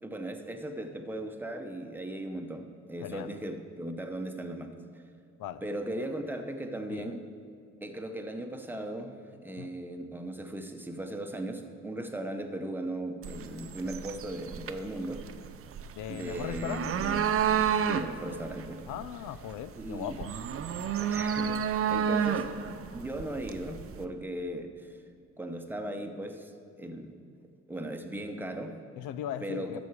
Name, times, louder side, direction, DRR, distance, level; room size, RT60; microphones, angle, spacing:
voice 1, 0.0-4.9 5.6-7.2 7.8-9.2 9.4-15.2 16.1-17.4 17.9-18.8 19.8-20.2 21.0-22.5 22.9-25.0 25.4-26.5 26.8-27.2 27.7-28.8 29.4-29.8, right 1 dB, 5° right, 5 dB, 0.9 m, -37 dB
sound 1, 13.2-24.1, right 8 dB, 50° right, 0.6 m, -31 dB
voice 2, 16.0-17.0 18.9-20.3 29.0-29.8, left 10 dB, 90° left, 14 dB, 0.5 m, -38 dB
12.5 x 7.0 x 4.7 m, 2.4 s
cardioid pair, 90°, 30 cm